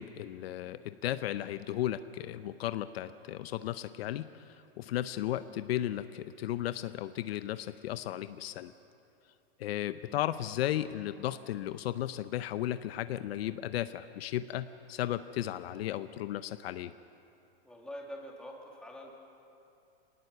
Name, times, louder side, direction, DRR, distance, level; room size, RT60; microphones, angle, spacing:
voice 1, 0.0-8.7 9.6-16.9, left 13 dB, 70° left, 12 dB, 0.7 m, -35 dB
voice 2, 17.6-19.1, equal, 5° left, -1 dB, 2.2 m, -45 dB
25.0 x 19.0 x 6.8 m, 2.8 s
supercardioid pair, 165°, 32 cm